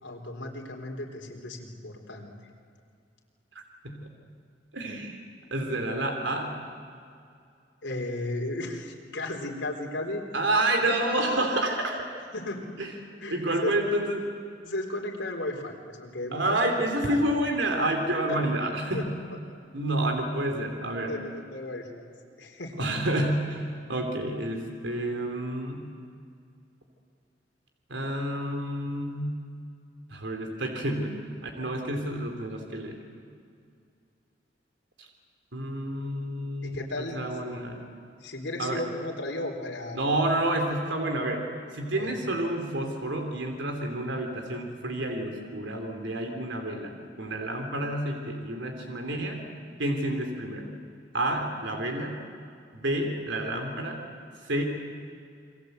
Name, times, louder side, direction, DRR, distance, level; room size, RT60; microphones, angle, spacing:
voice 1, 0.0-2.3 7.8-10.2 10.8-11.5 12.3-12.7 13.2-13.7 14.6-16.6 17.0-17.2 18.3-18.4 18.9-19.0 21.1-22.1 22.4-22.9 36.6-37.2 38.2-40.1 41.9-42.1, left 2 dB, 75° left, 0 dB, 4.0 m, -35 dB
voice 2, 4.7-5.2 5.5-6.6 10.3-12.1 12.8-12.9 13.3-14.3 16.3-19.0 19.7-21.1 22.8-25.9 27.9-29.4 30.1-31.1 31.4-33.0 35.5-37.8 38.6-38.8 39.9-41.4 41.7-49.4 49.8-50.7 51.1-52.2 52.7-54.0 54.5-54.6, right 1 dB, 85° right, 3 dB, 3.3 m, -29 dB
29.0 x 23.5 x 8.1 m, 2.3 s
head